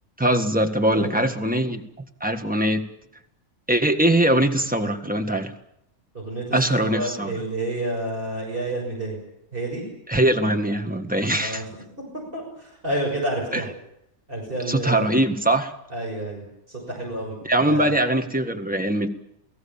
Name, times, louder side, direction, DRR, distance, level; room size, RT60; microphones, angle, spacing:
voice 1, 0.2-1.8 2.2-2.8 3.7-5.5 6.5-7.3 10.1-11.6 13.5-13.6 14.7-15.7 17.4-19.1, right 1 dB, 5° right, 6 dB, 1.6 m, -22 dB
voice 2, 0.9-1.2 6.1-9.2 9.5-9.8 11.3-11.7 12.3-13.7 14.3-15.1 15.9-17.4 17.6-17.9, right 1 dB, 40° right, -2 dB, 6.5 m, -29 dB
28.5 x 18.0 x 7.2 m, 0.81 s
omnidirectional pair, 1.5 m